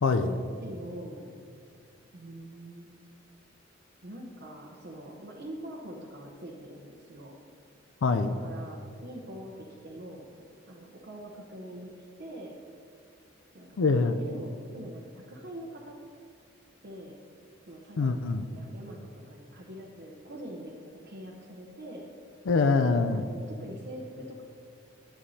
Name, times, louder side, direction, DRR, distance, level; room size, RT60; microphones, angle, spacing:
voice 1, 0.2-1.4 2.1-2.9 4.0-7.4 8.4-10.3 10.7-11.9 12.2-12.6 13.5-13.8 14.2-16.0 16.8-17.2 17.7-22.1 23.1-24.4, equal, 55° right, -2 dB, 0.8 m, -44 dB
voice 2, 8.0-8.4 13.8-14.2 18.0-18.5 22.5-23.3, left 4 dB, 70° left, 8 dB, 0.4 m, -24 dB
11.5 x 9.2 x 2.7 m, 2.3 s
head